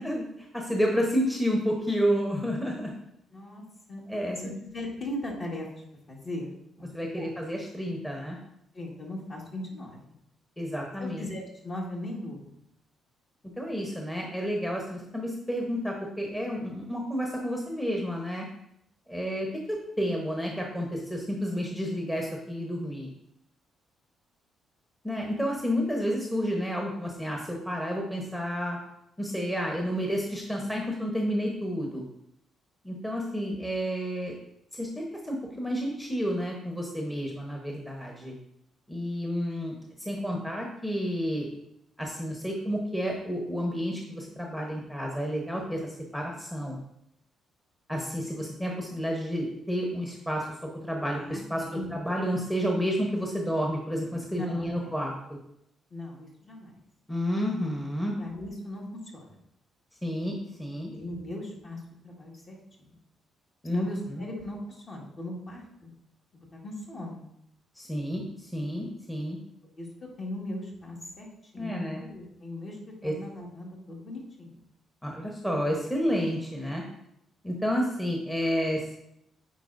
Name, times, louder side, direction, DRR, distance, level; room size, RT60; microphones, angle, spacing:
voice 1, 0.0-2.9 4.1-4.5 6.9-8.4 10.6-11.2 13.6-18.5 19.1-23.1 25.0-28.8 29.2-32.0 32.8-34.3 34.7-38.3 38.9-41.5 42.0-46.8 47.9-50.5 50.8-51.6 51.9-55.4 57.1-58.1 60.0-60.3 60.6-60.9 63.6-63.9 64.2-64.3 67.8-69.4 71.6-72.0 73.0-73.1 75.0-76.8 77.4-78.9, equal, 10° left, 0 dB, 1.0 m, -30 dB
voice 2, 3.3-4.0 4.4-5.7 6.1-6.9 7.2-7.4 8.7-10.1 11.0-12.6 51.3-52.0 54.3-55.0 55.9-56.8 58.2-58.8 59.1-59.4 60.9-62.9 63.7-65.9 66.3-67.2 69.8-69.9 70.2-74.6, left 1 dB, 45° left, -2 dB, 1.8 m, -38 dB
9.0 x 4.3 x 2.6 m, 0.79 s
cardioid pair, 90°, 0 cm